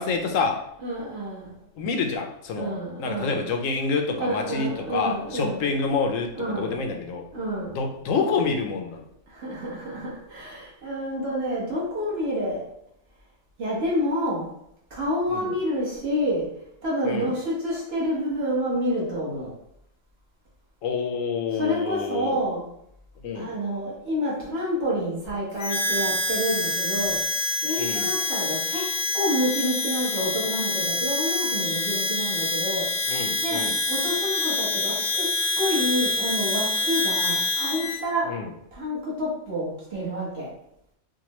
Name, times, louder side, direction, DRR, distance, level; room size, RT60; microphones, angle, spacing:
voice 1, 0.0-0.6 1.8-7.3 7.7-9.1 15.3-15.5 17.0-17.3 20.8-22.4 23.2-23.5 27.8-28.1 33.1-33.8 38.3-38.5, left 4 dB, 80° left, 3 dB, 1.0 m, -27 dB
voice 2, 0.8-1.6 2.5-3.4 4.2-5.7 6.3-6.7 7.3-7.8 9.3-12.6 13.6-14.5 14.9-16.5 16.8-19.5 21.5-22.7 23.3-27.2 27.6-28.9 29.1-32.9 33.4-33.6 33.9-35.3 35.6-38.3 38.7-40.5, equal, 55° right, -6 dB, 1.5 m, -28 dB
Harmonica, 25.6-38.0, left 2 dB, 45° left, 0.8 m, -26 dB
4.9 x 2.2 x 3.0 m, 0.75 s
omnidirectional pair, 1.3 m